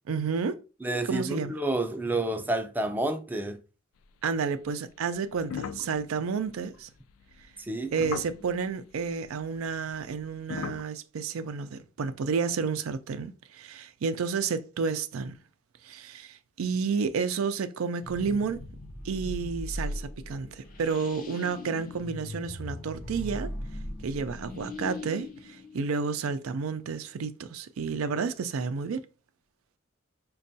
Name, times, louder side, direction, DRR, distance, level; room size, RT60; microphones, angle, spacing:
voice 1, 0.1-0.6 1.1-1.5 4.2-6.9 7.9-15.3 15.8-18.6 19.0-23.5 24.0-29.0, right 5 dB, 75° right, 0.4 m, -31 dB
voice 2, 0.8-3.6 7.7-7.9, right 2 dB, 10° right, 0.4 m, -29 dB
sound 1, 5.4-8.7 9.7-10.8, left 7 dB, 85° left, 0.3 m, -38 dB
sound 2, 18.0-26.6, left 1 dB, 40° left, 0.6 m, -39 dB
5.2 x 2.3 x 2.6 m
head